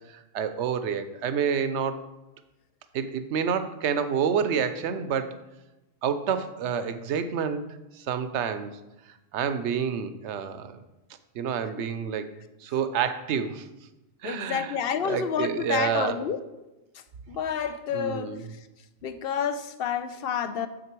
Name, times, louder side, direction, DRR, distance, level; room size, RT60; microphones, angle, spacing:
voice 1, 0.1-2.0 2.9-5.4 6.0-7.6 8.0-8.7 9.3-10.8 11.3-12.3 12.6-13.7 14.2-14.8 15.0-16.2 17.9-18.5, right 7 dB, 80° right, 11 dB, 0.9 m, -28 dB
voice 2, 14.2-16.4 17.3-18.3 19.0-20.7, left 7 dB, 65° left, 11 dB, 0.7 m, -29 dB
6.7 x 6.6 x 4.5 m, 1.0 s
omnidirectional pair, 1.2 m